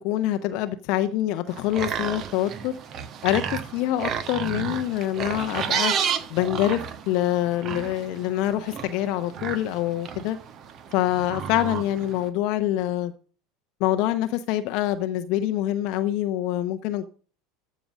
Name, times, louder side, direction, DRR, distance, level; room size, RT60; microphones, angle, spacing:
voice 1, 0.0-2.8 3.2-5.9 6.3-10.4 10.9-13.1 13.8-17.0, left 13 dB, 55° left, 0.8 m, -25 dB
sound 1, 1.5-12.3, right 7 dB, 40° right, 1.3 m, -32 dB
14.0 x 5.2 x 6.3 m
figure-of-eight pair, 75°, 0 cm